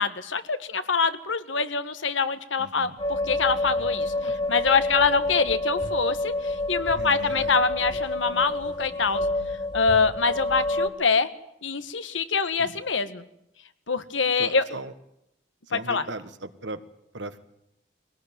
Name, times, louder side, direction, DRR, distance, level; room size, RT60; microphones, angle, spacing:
voice 1, 0.0-9.2 9.7-11.3 11.6-13.2 13.9-14.6 15.7-16.0, left 5 dB, 85° left, 11 dB, 1.5 m, -25 dB
voice 2, 2.6-3.0 4.2-4.4 6.9-7.6 12.6-12.8 14.4-14.9 15.7-16.8 17.1-17.4, right 2 dB, 70° right, 11 dB, 1.5 m, -38 dB
sound 1, 3.0-10.9, left 2 dB, 25° left, 2.5 m, -28 dB
22.5 x 18.0 x 9.2 m, 0.81 s
head